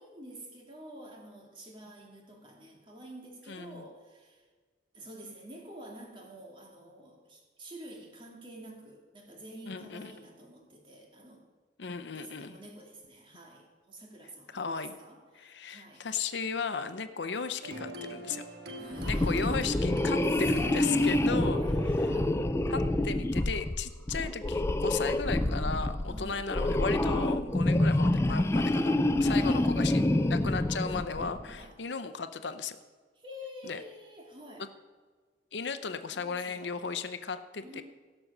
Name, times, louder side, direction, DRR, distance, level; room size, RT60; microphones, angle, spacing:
voice 1, 0.0-4.5 4.9-11.5 12.1-16.1 18.8-19.6 20.5-22.4 26.1-26.5 29.3-30.3 31.5-31.8 33.2-34.7 36.0-36.8 37.6-37.8, equal, 30° right, 0 dB, 2.3 m, -48 dB
voice 2, 3.5-3.8 9.7-10.1 11.8-12.6 14.5-14.9 15.3-18.4 19.0-21.6 22.7-32.8 33.6-33.8 34.6-34.7 35.5-37.8, left 5 dB, 80° left, 11 dB, 0.7 m, -35 dB
sound 1, 17.6-23.1, right 2 dB, 70° right, 1.5 m, -42 dB
sound 2, 19.0-31.4, left 1 dB, 15° left, 0.4 m, -27 dB
16.5 x 6.1 x 6.6 m, 1.4 s
head